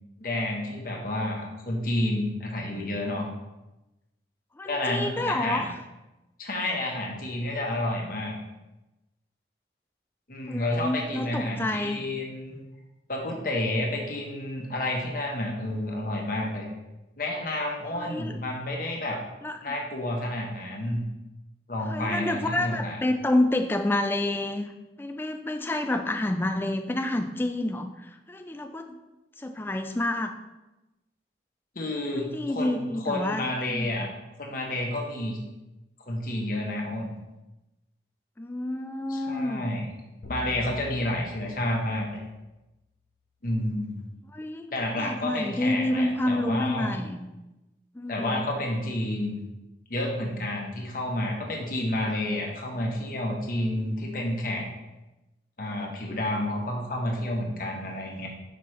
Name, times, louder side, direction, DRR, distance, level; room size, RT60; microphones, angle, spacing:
voice 1, 0.2-3.3 4.6-5.6 6.4-8.4 10.3-12.6 13.1-16.7 17.2-19.2 19.6-21.0 21.7-23.0 31.7-34.1 34.4-35.4 36.1-37.1 39.1-39.8 40.3-42.2 43.4-44.0 44.7-46.9 48.1-49.4 49.9-54.6 55.6-58.3, left 1 dB, 50° left, 0 dB, 1.1 m, -30 dB
voice 2, 4.6-5.8 10.5-12.0 17.9-18.4 19.4-19.7 21.9-24.7 25.0-29.0 29.4-30.3 32.1-33.4 33.7-34.1 38.4-39.7 44.3-47.3 47.9-48.5, left 1 dB, 10° left, 6 dB, 0.3 m, -29 dB
sound 1, 40.2-42.7, left 2 dB, 70° left, 0.7 m, -43 dB
5.9 x 5.2 x 3.2 m, 1.0 s
head